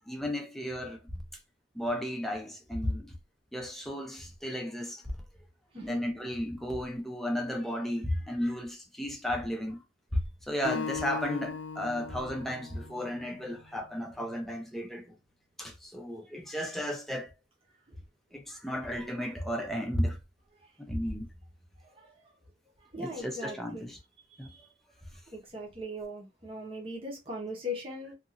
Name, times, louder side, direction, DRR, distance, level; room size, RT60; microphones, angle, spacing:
voice 1, 0.1-1.0 1.7-3.1 3.5-5.0 5.8-9.8 10.1-10.2 10.5-15.1 15.6-17.3 18.3-20.2 20.8-21.3 23.0-24.0 24.4-24.5, equal, ahead, 0.6 m, -34 dB
Acoustic guitar, 10.6-13.9, left 6 dB, 75° left, 0.5 m, -39 dB
voice 2, 22.9-23.9 24.3-24.6 25.3-28.1, left 1 dB, 30° right, 1.0 m, -39 dB
2.8 x 2.6 x 2.5 m
head